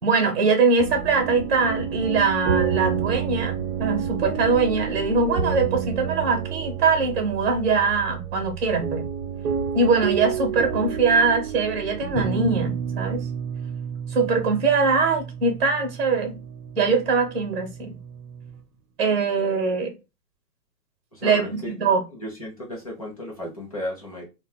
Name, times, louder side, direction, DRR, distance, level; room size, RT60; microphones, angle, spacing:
voice 1, 0.0-9.1 9.7-13.3 14.1-16.4 16.7-18.0 19.0-19.9 21.2-22.0, right 4 dB, 40° right, 1.1 m, -22 dB
sound 1, 0.8-18.6, right 7 dB, 75° right, 0.7 m, -30 dB
voice 2, 21.1-21.7 22.1-24.3, left 1 dB, 25° left, 0.5 m, -34 dB
2.8 x 2.2 x 2.3 m
hypercardioid pair, 165°, 48 cm